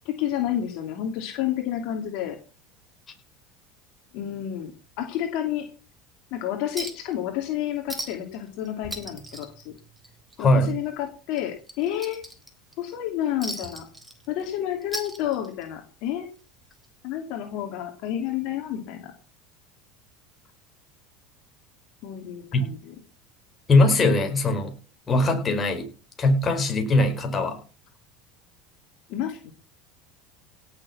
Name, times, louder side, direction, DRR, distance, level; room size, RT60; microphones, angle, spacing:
voice 1, 0.0-2.4 4.1-4.7 5.0-5.7 6.3-9.7 10.4-12.2 12.8-13.9 14.3-16.3 17.0-19.1 22.0-22.9 29.1-29.5, left 11 dB, 65° left, 4 dB, 2.7 m, -30 dB
Chink clink, 6.8-7.1 7.4-7.5 7.9-8.4 8.7-10.4 10.7-10.9 11.3-12.7 13.4-14.5 14.8-15.7 16.8-16.9, right 1 dB, 5° right, 3.8 m, -37 dB
voice 2, 10.4-10.8 22.5-22.7 23.7-24.7 25.1-25.9 26.2-27.6, left 2 dB, 25° left, 4 dB, 4.9 m, -21 dB
17.0 x 7.2 x 5.9 m, 0.36 s
supercardioid pair, 100°, 0 cm